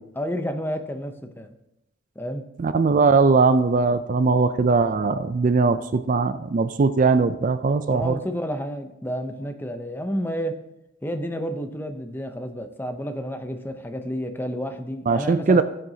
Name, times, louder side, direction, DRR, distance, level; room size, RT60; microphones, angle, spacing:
voice 1, 0.1-1.6 2.2-2.4 7.9-10.6 11.0-15.6, equal, 10° left, 7 dB, 0.6 m, -30 dB
voice 2, 2.6-8.2 15.1-15.6, right 4 dB, 40° right, 12 dB, 0.4 m, -20 dB
16.0 x 7.7 x 2.8 m, 0.84 s
head